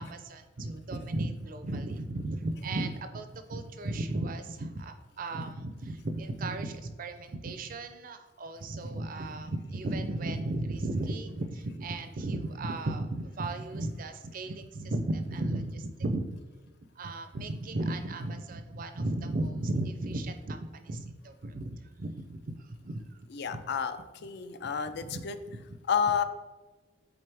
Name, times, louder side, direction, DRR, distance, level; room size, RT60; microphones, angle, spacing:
voice 1, 0.0-16.4 17.0-23.0 23.5-23.6 25.0-25.2 25.7-25.8, right 2 dB, 45° right, 9 dB, 0.5 m, -35 dB
voice 2, 23.3-24.0 24.2-25.4 25.9-26.2, left 7 dB, 60° left, 10 dB, 0.4 m, -30 dB
7.8 x 3.7 x 3.3 m, 1.2 s
head